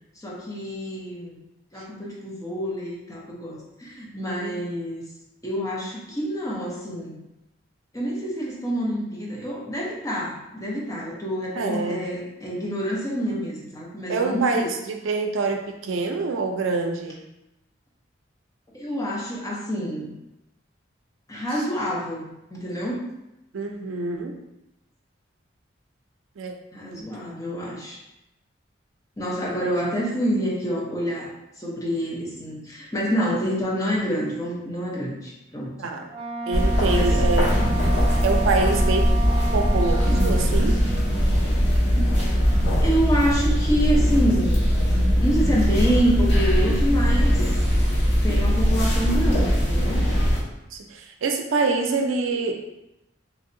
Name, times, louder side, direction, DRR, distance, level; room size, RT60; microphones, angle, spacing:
voice 1, 0.2-1.4 1.7-5.0 5.4-7.2 7.9-14.7 18.7-20.1 21.3-23.0 26.7-28.0 29.2-31.3 31.6-35.7 36.9-37.3 42.8-44.7 45.2-47.6 48.2-50.0, equal, 15° left, -5 dB, 0.6 m, -27 dB
voice 2, 11.6-12.0 14.1-17.2 21.5-21.6 23.5-24.4 26.4-26.5 26.9-27.4 35.8-36.1 36.5-37.5 38.2-39.0 39.4-40.8 50.7-52.5, right 3 dB, 90° right, 4 dB, 0.4 m, -26 dB
Wind instrument woodwind instrument, 36.1-40.6, right 2 dB, 30° right, 0.4 m, -32 dB
sound 1, 36.5-50.4, equal, 65° left, 0.8 m, -20 dB
3.1 x 2.7 x 2.6 m, 0.91 s
head